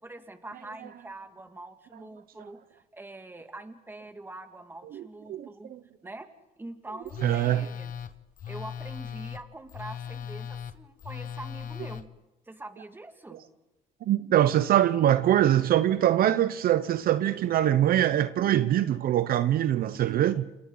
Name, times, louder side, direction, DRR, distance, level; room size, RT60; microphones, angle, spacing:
voice 1, 0.0-5.7 6.0-6.3 6.6-7.9 8.5-12.1 12.5-13.4, right 2 dB, 10° right, 2.1 m, -44 dB
voice 2, 5.3-5.8 7.2-7.7 14.0-20.5, right 12 dB, 60° right, 0.8 m, -23 dB
Telephone, 7.1-12.0, left 8 dB, 55° left, 1.1 m, -38 dB
28.0 x 27.5 x 4.0 m
cardioid pair, 110°, 17 cm